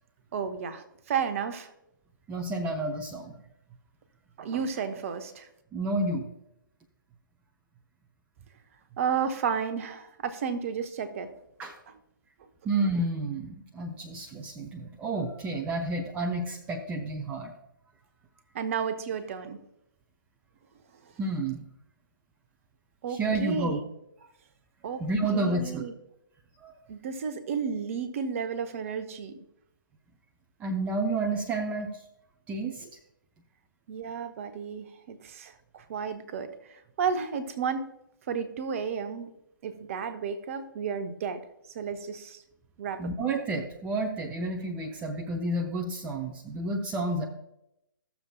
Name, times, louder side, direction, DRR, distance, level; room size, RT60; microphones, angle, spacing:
voice 1, 0.3-1.7 4.4-5.5 9.0-11.3 18.5-19.6 21.0-21.1 23.0-23.8 24.8-25.0 25.3-25.9 26.9-29.4 33.9-37.9 38.3-39.3 39.6-41.4 41.7-42.4 42.8-43.0, right 6 dB, 40° right, 10 dB, 0.9 m, -32 dB
voice 2, 2.3-3.4 5.7-6.3 11.6-11.7 12.6-17.5 21.2-21.6 23.1-23.8 25.0-25.8 26.6-26.8 30.6-32.0 32.5-32.8 43.0-47.3, right 2 dB, 10° right, 1 dB, 0.6 m, -30 dB
15.5 x 6.9 x 2.3 m, 0.81 s
figure-of-eight pair, 135°, 12 cm